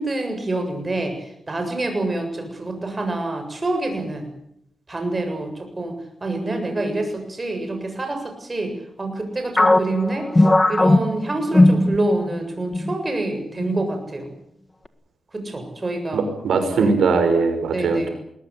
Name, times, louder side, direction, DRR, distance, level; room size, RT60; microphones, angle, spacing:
voice 1, 0.0-4.3 4.9-5.9 6.2-14.2 15.3-16.2 16.8-16.9 17.7-18.1, right 2 dB, 25° right, 5 dB, 7.4 m, -26 dB
sound 1, 9.6-12.4 12.7-12.9 13.6-14.0, left 2 dB, 20° left, 1.7 m, -17 dB
voice 2, 16.1-18.1, right 4 dB, 85° right, 7 dB, 5.7 m, -20 dB
22.0 x 19.0 x 9.6 m, 0.76 s
cardioid pair, 95°, 0 cm